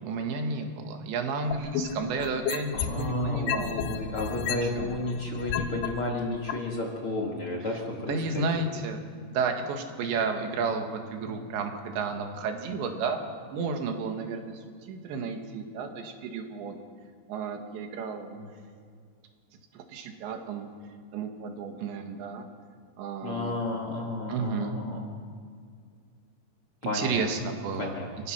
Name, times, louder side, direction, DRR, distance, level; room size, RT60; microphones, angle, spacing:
voice 1, 0.0-3.8 4.4-5.1 8.1-9.0 9.3-13.2 13.5-16.8 17.3-18.5 19.7-20.7 21.1-22.5 23.0-23.6 24.3-24.8 26.9-28.0 28.2-28.3, right 4 dB, 85° right, 4 dB, 4.0 m, -32 dB
sound 1, 1.5-3.1 3.5-5.9 6.5-6.6, left 9 dB, 80° left, 3.2 m, -31 dB
voice 2, 2.7-8.7 11.2-11.4 23.2-25.0 26.8-27.3 27.8-28.1, left 2 dB, 45° left, 1 dB, 2.0 m, -32 dB
27.5 x 15.5 x 6.0 m, 2.1 s
omnidirectional pair, 5.0 m